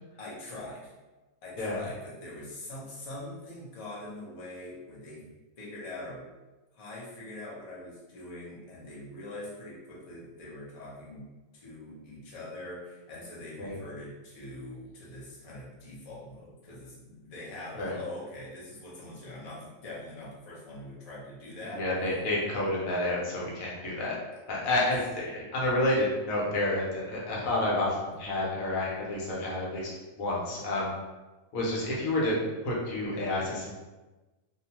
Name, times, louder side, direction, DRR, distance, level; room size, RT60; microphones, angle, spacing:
voice 1, 0.2-0.9 1.4-5.2 5.6-6.3 6.7-11.3 11.5-21.8 24.5-24.9, left 1 dB, 35° left, -6 dB, 0.6 m, -43 dB
voice 2, 21.7-24.2 24.5-30.9 31.5-32.4 32.6-33.7, left 1 dB, 80° left, -4 dB, 1.1 m, -29 dB
2.6 x 2.2 x 2.8 m, 1.2 s
omnidirectional pair, 1.4 m